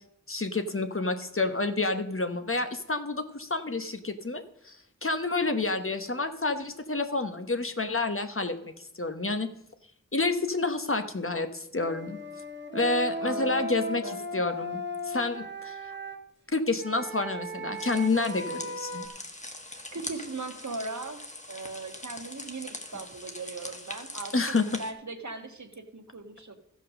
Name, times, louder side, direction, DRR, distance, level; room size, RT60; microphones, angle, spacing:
voice 1, 0.3-4.8 5.0-9.5 10.1-12.2 12.7-14.0 14.3-15.8 16.5-19.1 24.3-24.7, left 3 dB, 45° left, 8 dB, 1.1 m, -29 dB
Wind instrument woodwind instrument, 11.8-16.2 16.8-19.1, equal, 35° right, 1.5 m, -36 dB
voice 2, 13.2-14.2 19.9-21.2 21.5-26.6, right 3 dB, 65° right, 5 dB, 1.4 m, -39 dB
sound 1, 17.8-24.9, left 1 dB, 25° left, 1.4 m, -42 dB
14.0 x 5.4 x 6.4 m, 0.78 s
wide cardioid pair, 50°, 31 cm